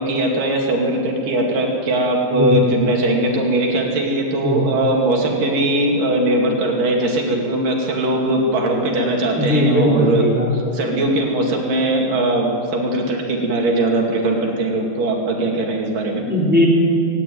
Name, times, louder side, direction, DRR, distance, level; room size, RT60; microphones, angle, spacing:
voice 1, 0.0-10.3 10.5-16.2, right 1 dB, 50° right, 0 dB, 3.6 m, -20 dB
voice 2, 9.4-10.5 16.3-16.7, left 1 dB, ahead, -3 dB, 3.2 m, -18 dB
18.5 x 17.5 x 9.4 m, 2.5 s
omnidirectional pair, 5.4 m